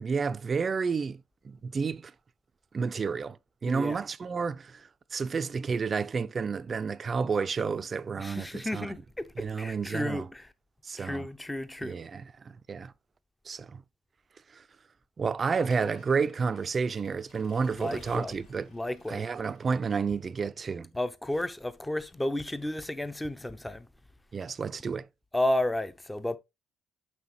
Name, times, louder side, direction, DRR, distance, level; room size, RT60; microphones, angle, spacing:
voice 1, 0.0-2.1 2.7-3.4 3.6-8.9 9.4-10.3 10.8-11.3 11.8-12.3 12.7-12.9 13.5-13.8 14.5-14.6 15.2-18.7 19.1-20.9 24.3-25.1, right 5 dB, 40° right, 0.4 m, -30 dB
voice 2, 3.7-4.0 8.2-10.5 11.0-12.0 17.8-18.4 18.7-19.2 20.9-23.8 25.3-26.4, left 1 dB, 10° left, 0.6 m, -32 dB
Accelerating revving vroom / Mechanisms, 15.5-20.4, left 3 dB, 75° left, 3.9 m, -56 dB
6.4 x 5.7 x 3.0 m
supercardioid pair, 65°, 0 cm